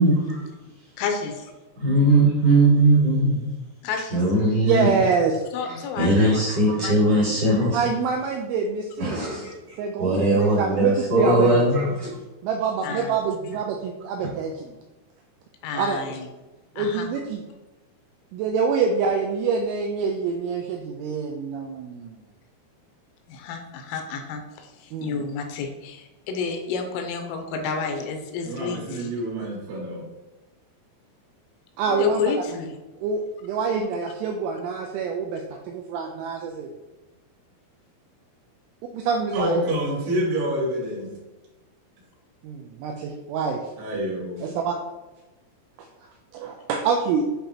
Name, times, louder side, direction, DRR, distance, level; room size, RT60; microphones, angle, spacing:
voice 1, 0.0-0.3 1.8-3.4 4.1-4.9 6.0-7.7 9.0-9.5 10.0-11.8, right 2 dB, 45° right, -8 dB, 2.0 m, -19 dB
voice 2, 1.0-1.3 3.8-4.2 5.5-7.4 12.8-13.2 15.6-16.3 16.8-17.1 23.3-29.1 31.9-32.7, left 5 dB, 85° left, 4 dB, 3.3 m, -30 dB
voice 3, 4.6-5.4 7.7-9.2 9.8-11.7 12.4-14.8 15.8-16.2 16.8-17.4 18.3-22.2 24.9-25.2 31.8-32.2 33.0-36.7 38.9-39.7 42.4-43.6 44.4-44.8 45.8-45.9 46.3-47.3, right 5 dB, 85° right, 2 dB, 2.7 m, -26 dB
voice 4, 28.4-30.0 39.3-41.1 43.8-44.5, right 1 dB, 70° right, -5 dB, 3.9 m, -27 dB
10.0 x 3.5 x 2.9 m, 1.1 s
omnidirectional pair, 6.0 m